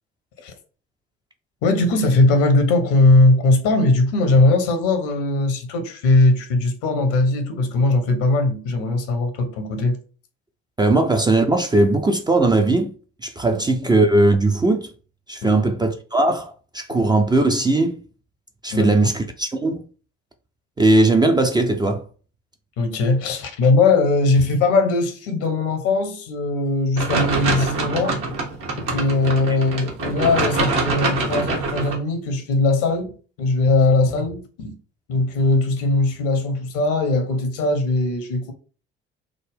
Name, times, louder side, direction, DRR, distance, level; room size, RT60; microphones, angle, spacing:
voice 1, 1.6-10.0 15.4-15.6 18.7-18.9 22.8-28.2 28.8-34.7 35.1-38.5, left 2 dB, 65° left, 0.9 m, -19 dB
voice 2, 10.8-12.9 13.2-14.9 15.3-18.0 18.6-19.8 20.8-22.0, right 2 dB, 15° right, 0.4 m, -18 dB
sound 1, 27.0-32.0, right 3 dB, 65° right, 1.1 m, -24 dB
3.7 x 2.0 x 3.4 m
figure-of-eight pair, 50°, 33 cm